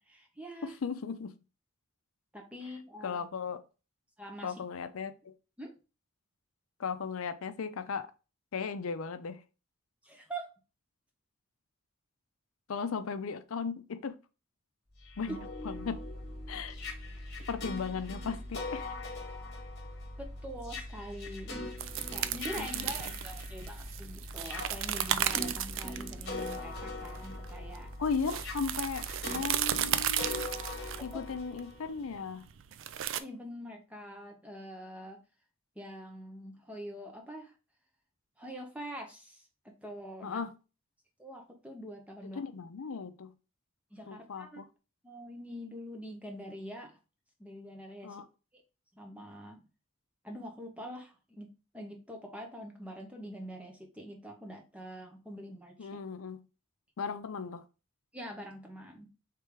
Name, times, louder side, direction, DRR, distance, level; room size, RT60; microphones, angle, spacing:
voice 1, 0.1-0.8 2.3-3.2 4.2-4.5 5.6-5.7 10.0-10.5 20.2-21.7 22.1-27.9 30.7-31.2 33.2-35.2 35.8-37.5 38.4-40.4 41.2-42.4 43.9-44.6 45.0-47.0 47.4-48.2 48.9-49.6 50.2-51.5 51.7-55.9 58.1-59.1, equal, 5° right, 0.8 m, -44 dB
voice 2, 0.6-1.3 3.0-3.6 4.4-5.3 6.8-8.1 8.5-9.4 12.7-14.2 15.2-15.4 15.6-16.0 16.5-16.8 17.5-19.0 22.6-23.2 28.0-30.5 31.0-32.4 40.2-40.5 42.3-43.3 44.1-44.7 48.0-48.3 55.8-56.4 57.0-57.6, left 5 dB, 80° left, 0.5 m, -36 dB
Mechanical fan, 14.9-31.8, equal, 40° right, 1.4 m, -45 dB
sound 1, 15.0-23.9 24.3-32.2, left 3 dB, 50° left, 1.2 m, -43 dB
sound 2, 21.8-33.2, right 11 dB, 65° right, 0.4 m, -35 dB
3.4 x 3.3 x 4.6 m
head